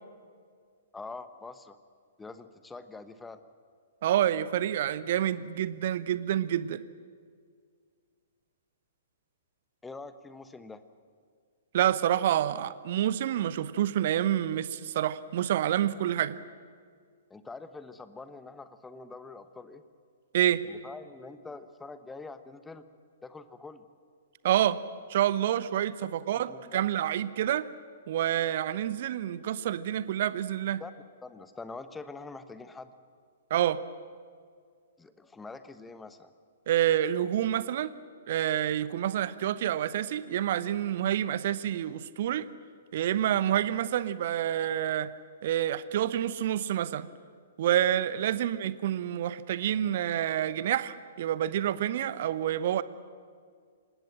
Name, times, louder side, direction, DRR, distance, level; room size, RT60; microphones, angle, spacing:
voice 1, 0.9-1.8 2.2-3.4 9.8-10.8 17.3-19.8 20.6-22.8 23.2-23.8 26.3-26.8 30.8-30.9 31.2-32.9 35.0-36.3, left 3 dB, 10° left, 12 dB, 1.1 m, -45 dB
voice 2, 4.0-6.8 11.7-16.4 20.3-20.6 24.4-24.8 25.1-27.7 28.1-30.8 33.5-33.8 36.7-37.9 38.3-42.5 42.9-45.1 45.4-47.1 47.6-52.8, right 11 dB, 45° right, 16 dB, 0.9 m, -28 dB
26.0 x 20.0 x 7.7 m, 2.1 s
figure-of-eight pair, 115°, 0 cm